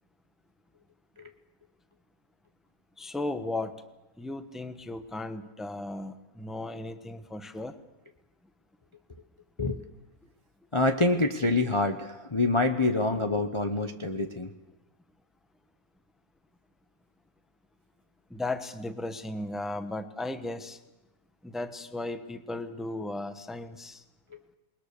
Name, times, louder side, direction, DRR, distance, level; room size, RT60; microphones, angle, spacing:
voice 1, 3.0-3.8 4.2-7.8 18.3-20.8 21.4-24.0, left 2 dB, ahead, 10 dB, 1.1 m, -36 dB
voice 2, 10.7-14.5, left 2 dB, 20° left, 5 dB, 0.9 m, -26 dB
27.5 x 21.0 x 6.8 m, 1.0 s
omnidirectional pair, 1.7 m